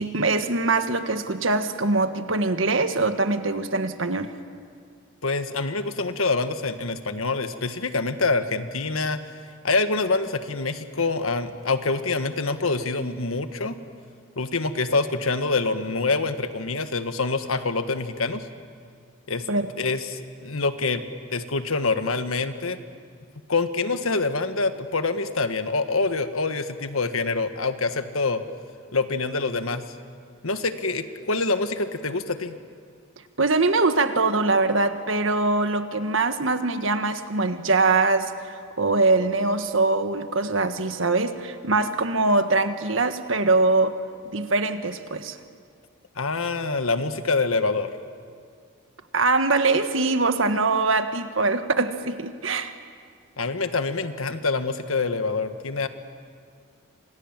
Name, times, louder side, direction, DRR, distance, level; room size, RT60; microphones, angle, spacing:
voice 1, 0.0-4.3 19.5-19.7 33.4-38.5 38.8-44.0 44.3-45.4 49.1-52.7, right 3 dB, 70° right, 8 dB, 1.6 m, -23 dB
voice 2, 5.2-9.2 9.6-13.8 14.4-18.4 19.3-19.4 19.8-21.0 21.3-22.8 23.5-28.4 28.9-29.8 30.4-32.5 46.2-47.9 53.4-55.9, left 3 dB, 85° left, 9 dB, 1.6 m, -26 dB
29.5 x 26.5 x 7.5 m, 2.1 s
head